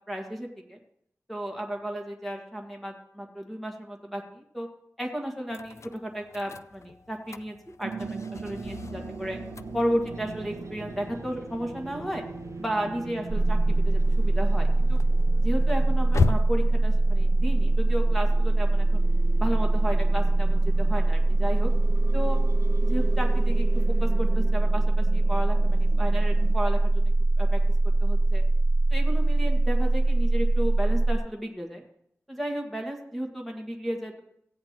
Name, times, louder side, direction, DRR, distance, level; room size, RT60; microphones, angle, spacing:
voice 1, 0.1-0.8 1.3-4.7 5.0-9.4 9.7-12.2 12.6-15.0 15.4-19.0 19.4-21.7 22.1-22.4 22.8-23.7 24.0-27.1 27.4-27.6 28.0-28.4 28.9-31.8 32.3-34.2, equal, ahead, 1 dB, 1.7 m, -33 dB
sound 1, 5.5-23.5, left 5 dB, 60° left, 0.4 m, -38 dB
sound 2, 7.8-26.6, right 4 dB, 65° right, 0.4 m, -41 dB
sound 3, 13.3-31.2, right 2 dB, 80° right, 0.8 m, -22 dB
16.5 x 9.3 x 3.0 m, 0.73 s
wide cardioid pair, 95°, 6 cm